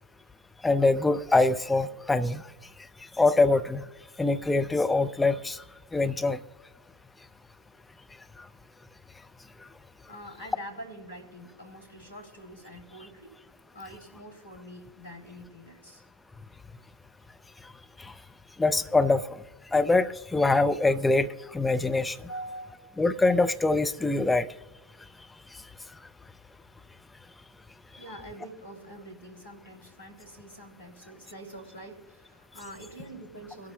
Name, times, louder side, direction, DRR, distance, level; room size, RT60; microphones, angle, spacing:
voice 1, 0.6-2.4 3.2-3.8 4.2-5.6 5.9-6.4 18.0-18.1 18.6-19.2 19.7-22.2 23.0-24.5, left 3 dB, 10° left, 0.5 m, -24 dB
voice 2, 10.1-13.3 13.7-16.0 22.3-23.0 28.0-33.7, right 1 dB, 75° left, 2.9 m, -45 dB
25.0 x 12.5 x 2.2 m
figure-of-eight pair, 90°, 0 cm